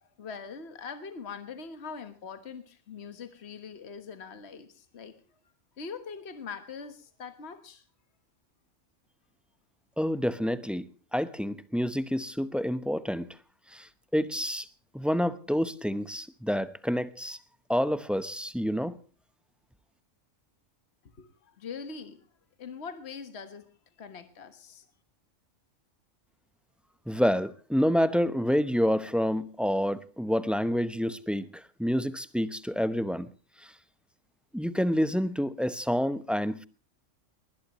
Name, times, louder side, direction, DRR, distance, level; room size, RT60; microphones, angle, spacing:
voice 1, 0.0-5.2 5.8-7.8 21.1-22.2 22.6-23.7 24.0-24.9, left 5 dB, 55° left, 1.7 m, -42 dB
voice 2, 10.0-10.9 11.1-13.3 13.7-13.9 14.1-14.7 14.9-17.4 17.7-19.0 27.1-33.3 34.5-36.6, equal, ahead, 0.7 m, -28 dB
20.5 x 20.0 x 3.1 m
omnidirectional pair, 1.3 m